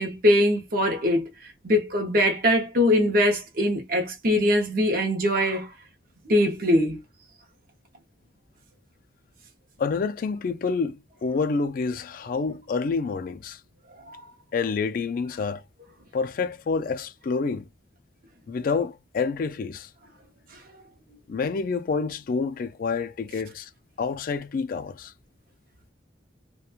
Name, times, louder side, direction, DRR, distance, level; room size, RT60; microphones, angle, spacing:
voice 1, 0.0-5.7 6.3-7.0 14.1-14.2, left 1 dB, 50° right, 0.7 m, -22 dB
voice 2, 9.8-13.6 14.5-15.6 16.1-17.7 18.5-19.9 21.3-23.7 24.0-25.1, left 4 dB, 50° left, 0.3 m, -28 dB
2.9 x 2.2 x 2.3 m
head